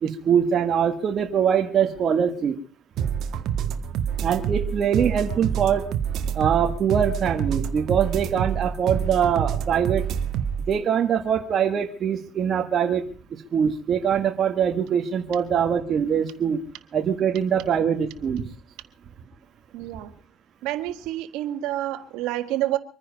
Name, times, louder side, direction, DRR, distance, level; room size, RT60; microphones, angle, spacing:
voice 1, 0.0-2.6 4.2-5.9 6.3-10.1 10.6-13.0 13.3-16.7 16.9-18.4, right 8 dB, 45° right, 3 dB, 1.7 m, -23 dB
sound 1, 3.0-10.7, right 8 dB, 60° right, 1.6 m, -27 dB
voice 2, 19.7-20.1 20.6-22.8, right 14 dB, 80° right, 9 dB, 1.7 m, -28 dB
24.5 x 10.0 x 5.4 m, 0.41 s
cardioid pair, 105°, 0 cm